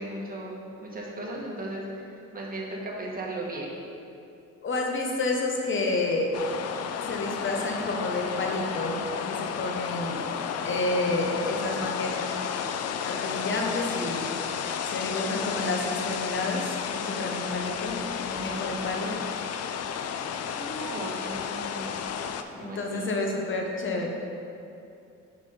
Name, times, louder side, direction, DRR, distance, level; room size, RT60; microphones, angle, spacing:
voice 1, 0.0-2.1 2.3-3.7 20.5-21.9 22.6-23.1, right 1 dB, 30° right, -3 dB, 1.4 m, -36 dB
voice 2, 4.6-6.3 7.0-10.2 10.6-12.1 13.0-14.3 14.9-19.1 22.5-24.1, left 2 dB, 40° left, 0 dB, 1.1 m, -30 dB
sound 1, 6.3-22.4, left 7 dB, 55° left, 0.4 m, -32 dB
6.0 x 4.2 x 5.5 m, 2.7 s
cardioid pair, 90°, 30 cm